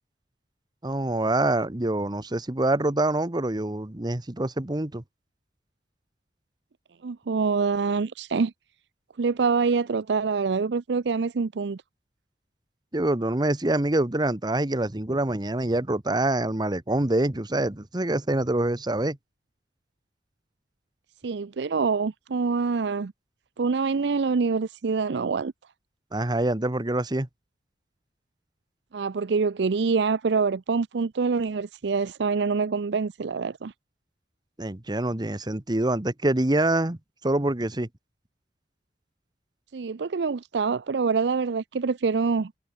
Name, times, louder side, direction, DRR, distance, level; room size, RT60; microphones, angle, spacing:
voice 1, 0.8-5.0 12.9-19.2 26.1-27.3 34.6-37.9, right 1 dB, 25° right, 1.1 m, -25 dB
voice 2, 7.0-8.5 9.2-11.8 21.2-23.1 23.6-25.5 28.9-33.7 39.7-42.5, right 4 dB, 70° right, 0.5 m, -25 dB
head